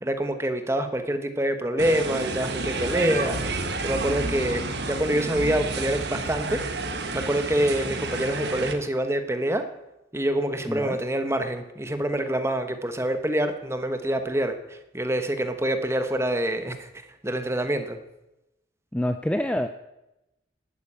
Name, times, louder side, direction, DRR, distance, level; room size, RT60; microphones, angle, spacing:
voice 1, 0.0-6.6 7.1-9.6 10.1-16.9 17.2-18.0, right 1 dB, 15° right, 8 dB, 1.1 m, -26 dB
sound 1, 1.8-8.7, right 3 dB, 60° right, 1.4 m, -30 dB
voice 2, 10.7-11.0 18.9-19.7, left 1 dB, 5° left, 8 dB, 0.5 m, -26 dB
11.5 x 9.5 x 8.7 m, 0.94 s
head